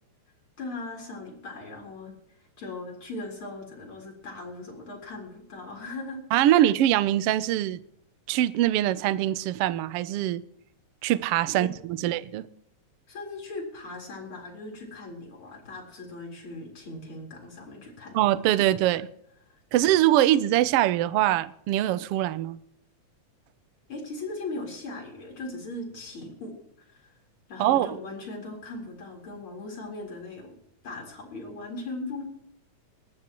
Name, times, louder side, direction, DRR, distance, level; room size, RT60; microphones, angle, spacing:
voice 1, 0.6-2.1 2.6-6.5 11.6-11.7 11.9-12.1 13.1-18.2 19.5-19.9 23.9-27.2 27.5-30.6 30.8-32.2, left 2 dB, 45° left, 4.7 m, -39 dB
voice 2, 6.3-7.8 8.3-10.4 11.0-12.5 18.1-19.1 19.7-22.6 27.6-27.9, right 13 dB, 80° right, 1.3 m, -23 dB
21.0 x 14.0 x 3.0 m
omnidirectional pair, 3.4 m